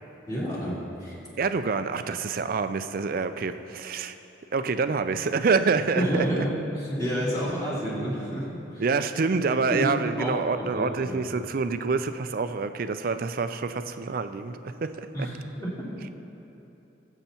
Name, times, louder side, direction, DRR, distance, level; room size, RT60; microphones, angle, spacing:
voice 1, 0.3-1.2 5.9-8.8 9.7-9.9 10.2-11.2 15.1-15.9, equal, 20° left, -9 dB, 2.8 m, -29 dB
voice 2, 1.4-4.2 4.5-6.5 8.8-15.3, right 4 dB, 45° right, 10 dB, 0.4 m, -27 dB
21.0 x 8.1 x 3.0 m, 3.0 s
head